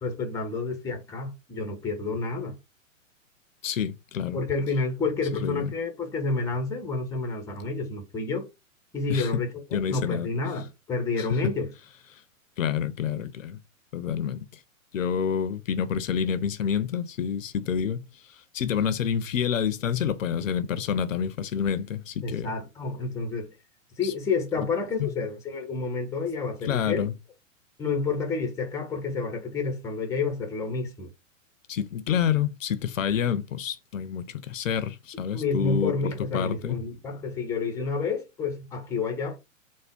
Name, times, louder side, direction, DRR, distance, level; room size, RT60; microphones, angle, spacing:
voice 1, 0.0-2.5 4.3-8.5 8.9-9.5 9.9-11.7 22.2-23.5 24.0-27.1 27.8-31.1 35.3-39.4, left 4 dB, 10° left, 0.6 m, -29 dB
voice 2, 3.6-4.4 5.4-5.7 9.1-9.3 9.7-10.3 11.2-11.4 12.6-13.6 13.9-14.5 14.9-18.0 18.5-22.5 24.0-24.1 25.0-25.1 26.6-27.1 31.7-36.8, left 8 dB, 70° left, 0.5 m, -28 dB
3.4 x 2.1 x 3.6 m
figure-of-eight pair, 115°, 41 cm